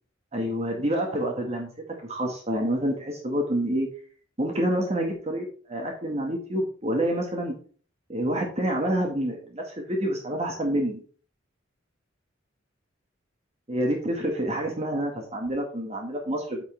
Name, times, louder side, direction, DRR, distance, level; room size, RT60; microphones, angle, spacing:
voice 1, 0.3-1.7 2.0-3.9 4.4-7.5 8.1-11.0 13.7-16.6, right 1 dB, 35° right, 1 dB, 1.6 m, -27 dB
9.3 x 6.1 x 3.3 m, 0.42 s
head